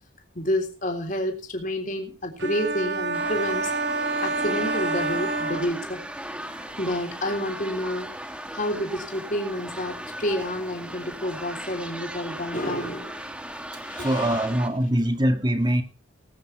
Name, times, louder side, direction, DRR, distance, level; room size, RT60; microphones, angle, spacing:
voice 1, 0.4-3.7 4.2-6.0 6.8-8.1 8.5-13.3 13.8-14.5, left 1 dB, 40° left, 3 dB, 3.7 m, -29 dB
sound 1, 2.4-6.3, right 3 dB, 65° right, 4.5 m, -28 dB
sound 2, 3.1-14.7, right 1 dB, 5° right, 1.7 m, -37 dB
voice 2, 14.0-15.8, right 1 dB, 20° right, 6 dB, 1.8 m, -23 dB
19.5 x 9.1 x 4.6 m, 0.33 s
head